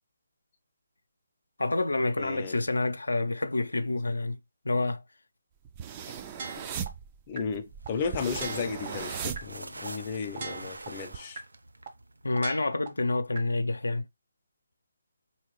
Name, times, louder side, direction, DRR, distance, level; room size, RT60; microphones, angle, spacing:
voice 1, 1.6-4.4 4.6-5.0 12.2-14.0, left 2 dB, 90° left, 0.5 m, -28 dB
voice 2, 2.2-2.6 7.3-11.4, left 5 dB, 30° left, 0.5 m, -34 dB
sound 1, 5.7-10.1 10.5-11.2, right 7 dB, 25° right, 0.4 m, -38 dB
sound 2, 6.4-6.9 7.4-7.5 7.9-8.0 8.4-8.9 9.4-9.5 9.9-10.0 10.4-10.9 11.4-11.5 11.9-12.0 12.4-12.9 13.4-13.5, right 4 dB, 40° right, 0.9 m, -39 dB
sound 3, 7.4-12.5, right 2 dB, 85° right, 0.5 m, -44 dB
3.6 x 2.8 x 3.1 m
figure-of-eight pair, 155°, 0 cm